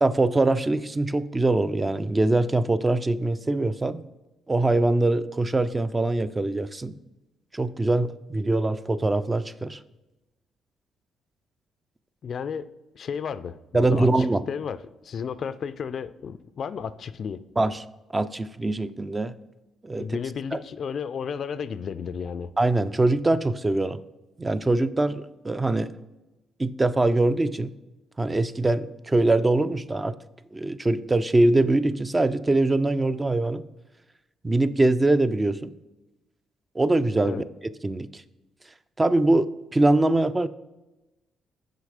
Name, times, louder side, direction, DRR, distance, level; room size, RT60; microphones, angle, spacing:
voice 1, 0.0-4.0 4.5-7.0 7.5-9.8 13.7-14.4 17.6-17.8 18.1-19.3 19.8-20.2 20.5-20.6 22.6-24.0 24.4-25.9 26.6-27.7 28.2-30.1 30.5-33.7 34.4-35.7 36.8-37.4 37.8-38.2 39.0-40.5, right 2 dB, 20° right, 0.3 m, -23 dB
voice 2, 12.2-12.7 12.9-17.4 20.0-22.5 37.2-37.4, left 6 dB, 55° left, 0.3 m, -33 dB
6.5 x 4.8 x 4.9 m
cardioid pair, 90°, 0 cm